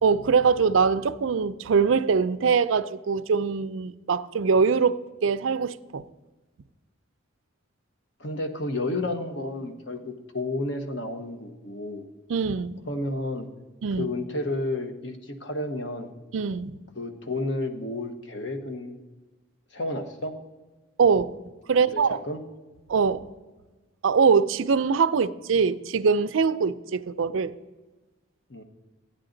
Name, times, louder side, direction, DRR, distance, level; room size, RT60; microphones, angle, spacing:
voice 1, 0.0-6.0 12.3-12.8 13.8-14.1 16.3-16.8 21.0-21.4 21.7-22.2 22.9-23.3 24.0-27.5, right 5 dB, 75° right, 0.4 m, -23 dB
voice 2, 8.2-12.1 12.9-13.5 14.0-16.1 16.9-19.0 19.7-20.4 21.7-22.4 28.5-28.6, left 2 dB, 60° left, 1.0 m, -31 dB
14.5 x 9.8 x 3.9 m
head